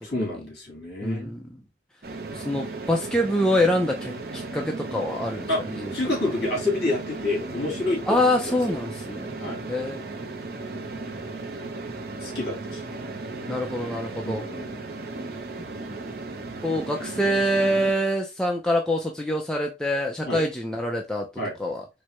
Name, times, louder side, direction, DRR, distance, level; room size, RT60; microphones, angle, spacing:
voice 1, 0.0-1.3 5.5-5.6 5.9-8.2 8.5-8.8 9.4-9.6 12.2-12.8 14.2-14.8 20.3-20.4 21.4-21.5, left 2 dB, 55° left, 2.3 m, -28 dB
voice 2, 1.0-1.4 2.3-5.9 8.1-9.3 9.7-10.0 13.5-14.4 16.6-21.3 21.6-21.8, left 1 dB, 5° left, 0.4 m, -25 dB
sound 1, 2.0-17.9, right 3 dB, 55° right, 0.6 m, -35 dB
4.6 x 2.1 x 3.0 m
head